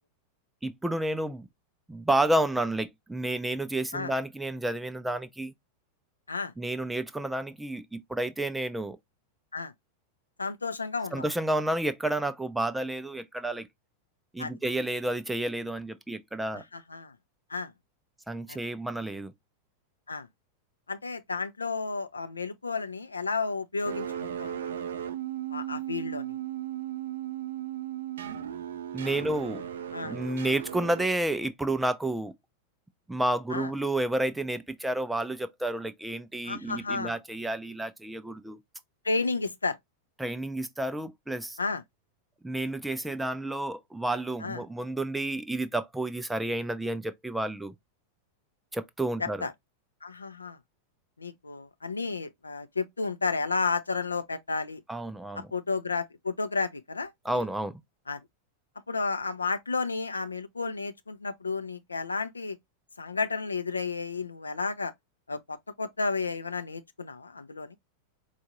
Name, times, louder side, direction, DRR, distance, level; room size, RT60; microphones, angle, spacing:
voice 1, 0.6-1.5 1.9-5.5 6.6-9.0 11.1-13.7 14.3-16.6 18.3-19.3 28.9-29.6 30.0-32.3 33.1-38.6 40.2-41.6 42.4-47.7 48.7-49.5 54.9-55.5 57.2-57.8, right 1 dB, 5° right, 0.4 m, -30 dB
voice 2, 10.4-11.3 14.4-14.5 16.5-17.1 17.5-17.7 18.5-18.6 20.1-20.3 20.9-24.8 25.5-26.4 29.9-30.2 33.5-33.7 36.4-37.2 39.0-39.8 41.6-41.8 44.4-44.6 49.2-49.5 50.0-50.6 51.2-54.8 55.3-57.4 58.1-58.2 58.9-62.6 63.0-64.9 65.3-67.8, left 4 dB, 80° left, 0.4 m, -32 dB
sound 1, 23.8-31.1, right 10 dB, 65° right, 0.5 m, -36 dB
4.4 x 2.3 x 2.9 m
figure-of-eight pair, 90°, 0 cm